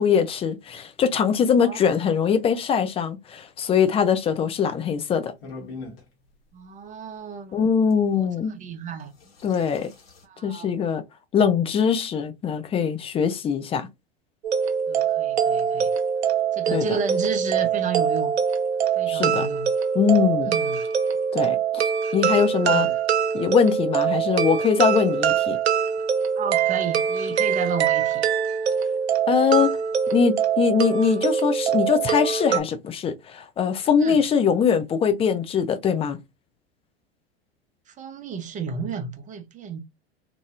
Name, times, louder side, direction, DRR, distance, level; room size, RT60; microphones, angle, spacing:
voice 1, 0.0-5.3 7.5-8.6 9.4-9.9 10.4-11.0 11.3-13.9 16.7-16.8 19.0-19.5 19.9-20.5 21.3-21.8 22.1-22.9 23.3-25.6 29.3-29.8 30.1-36.2, left 7 dB, 20° left, 0.4 m, -22 dB
sound 1, 5.4-6.0 7.9-8.0 9.0-10.2, left 3 dB, 65° left, 1.4 m, -41 dB
voice 2, 6.5-7.6 8.2-9.1 10.2-10.7 14.9-15.9 16.5-18.3 19.0-19.7 20.4-20.8 22.6-23.0 26.4-28.3 34.0-34.2 37.9-39.8, right 5 dB, 25° right, 0.7 m, -32 dB
sound 2, 14.4-32.6, right 7 dB, 80° right, 0.6 m, -23 dB
2.9 x 2.6 x 2.4 m
hypercardioid pair, 90°, 32 cm